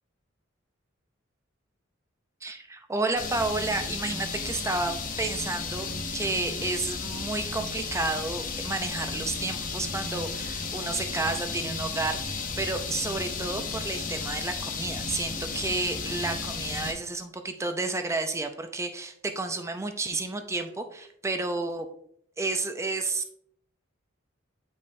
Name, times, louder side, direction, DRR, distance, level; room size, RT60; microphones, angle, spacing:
voice 1, 2.4-21.9 22.4-23.3, right 3 dB, 15° right, 6 dB, 0.5 m, -31 dB
sound 1, 3.2-16.9, left 4 dB, 45° left, 0.8 m, -34 dB
8.4 x 5.4 x 2.6 m, 0.69 s
head